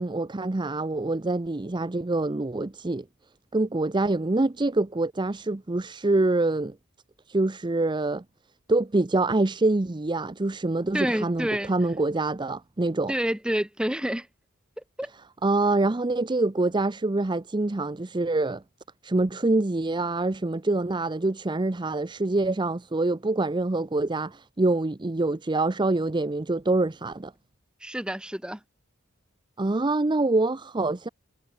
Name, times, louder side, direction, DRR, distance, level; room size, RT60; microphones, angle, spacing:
voice 1, 0.0-3.0 3.5-6.7 7.3-8.2 8.7-13.1 15.1-18.6 19.0-27.3 29.6-31.1, right 2 dB, 20° right, 0.6 m, -25 dB
voice 2, 10.9-11.7 13.1-14.2 15.0-15.1 27.8-28.6, equal, 5° right, 1.3 m, -28 dB
head